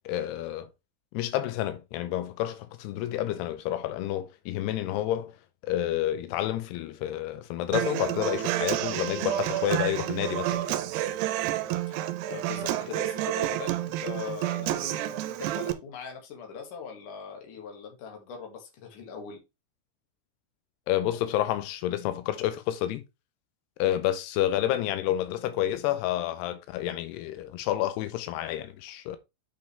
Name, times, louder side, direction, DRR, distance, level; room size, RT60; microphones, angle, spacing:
voice 1, 0.1-0.7 1.1-5.3 5.6-10.7 20.9-23.0 23.8-29.2, left 13 dB, 90° left, 2.8 m, -29 dB
Human voice / Acoustic guitar, 7.7-15.7, right 14 dB, 90° right, 2.8 m, -29 dB
voice 2, 11.6-19.4, left 6 dB, 60° left, 3.2 m, -41 dB
8.5 x 5.6 x 3.3 m
omnidirectional pair, 4.6 m